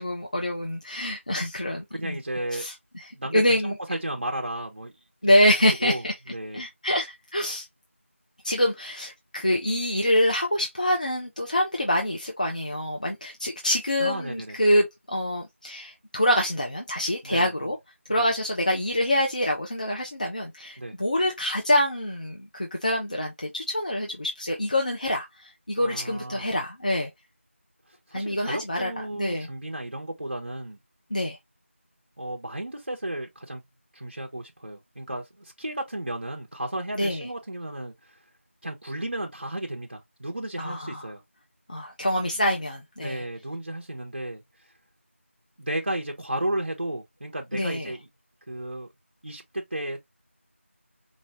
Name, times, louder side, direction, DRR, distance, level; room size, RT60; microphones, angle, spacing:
voice 1, 0.0-2.2 2.5-2.7 3.3-3.7 5.2-6.1 6.5-7.7 8.4-17.8 18.1-27.1 28.1-28.9 29.2-29.5 31.1-31.4 37.0-37.3 40.6-41.0 41.7-43.2 47.5-47.9, left 1 dB, 35° left, 0.8 m, -25 dB
voice 2, 1.9-2.7 3.1-4.9 5.2-6.6 14.0-14.6 17.2-17.7 18.1-18.3 20.8-20.9 25.8-26.5 28.1-30.8 32.2-33.6 33.9-38.2 38.6-41.2 43.0-44.4 45.6-48.1 48.5-48.9 49.2-50.0, right 1 dB, 45° right, 0.9 m, -33 dB
5.2 x 2.7 x 2.8 m
figure-of-eight pair, 175°, 7 cm